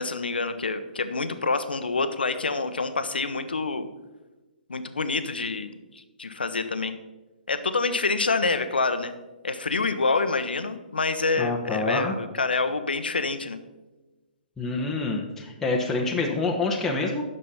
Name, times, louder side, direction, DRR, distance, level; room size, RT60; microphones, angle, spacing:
voice 1, 0.0-3.9 4.7-6.9 7.5-9.1 9.4-13.6, left 3 dB, 80° left, 10 dB, 0.9 m, -27 dB
voice 2, 11.4-12.1 14.6-17.2, left 3 dB, 10° left, -2 dB, 1.2 m, -27 dB
9.8 x 6.7 x 5.6 m, 1.1 s
figure-of-eight pair, 125°, 5 cm